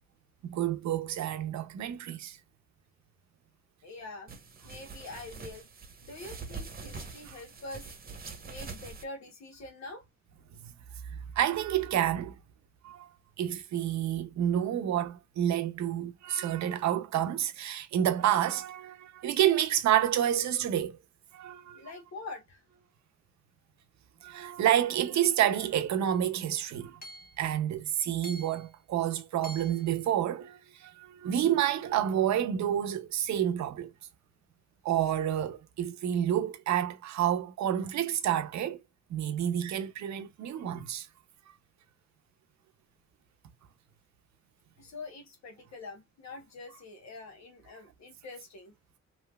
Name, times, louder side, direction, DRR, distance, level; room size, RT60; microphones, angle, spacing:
voice 1, 0.4-2.4 7.3-7.4 11.4-12.3 12.8-13.1 13.4-21.0 21.3-21.8 24.2-27.0 27.4-33.9 34.8-38.8 39.1-41.1, right 10 dB, 65° right, 0.7 m, -29 dB
voice 2, 3.8-4.4 4.6-5.7 6.0-7.9 8.5-10.1 21.7-22.7 44.8-48.7, left 3 dB, 65° left, 1.1 m, -45 dB
sound 1, 4.3-9.0, right 4 dB, 30° right, 1.0 m, -44 dB
Hammer / Chink clink, 26.1-26.2 27.0-27.4 28.2-28.7 29.4-29.9, equal, 30° left, 1.1 m, -46 dB
3.1 x 2.8 x 2.3 m
cardioid pair, 90°, 30 cm